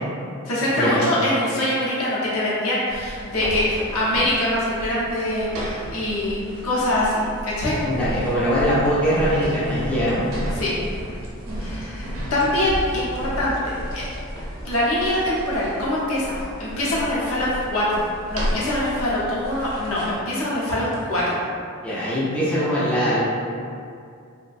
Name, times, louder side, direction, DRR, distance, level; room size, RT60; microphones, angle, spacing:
voice 1, 0.5-7.2 7.4-7.8 10.5-10.8 11.6-14.0 14.6-21.4, left 1 dB, 75° left, -7 dB, 0.7 m, -24 dB
sound 1, 2.9-20.2, equal, 70° right, 0.6 m, -33 dB
voice 2, 7.8-10.3 21.8-23.2, equal, 5° left, -10 dB, 0.4 m, -22 dB
2.4 x 2.1 x 2.4 m, 2.3 s
head